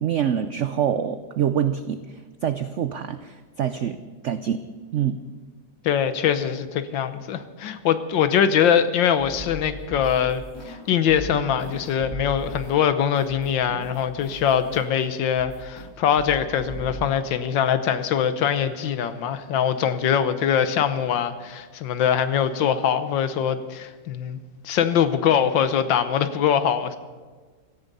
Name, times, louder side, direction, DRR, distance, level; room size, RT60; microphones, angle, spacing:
voice 1, 0.0-4.6 4.9-5.2, right 9 dB, 90° right, 11 dB, 0.6 m, -26 dB
voice 2, 5.8-24.4 24.6-27.0, left 8 dB, 90° left, 11 dB, 1.6 m, -23 dB
sound 1, 9.2-10.8 11.1-15.0 15.4-15.9 16.2-17.0, right 1 dB, 60° left, 6.9 m, -39 dB
17.0 x 14.0 x 5.4 m, 1.4 s
omnidirectional pair, 2.0 m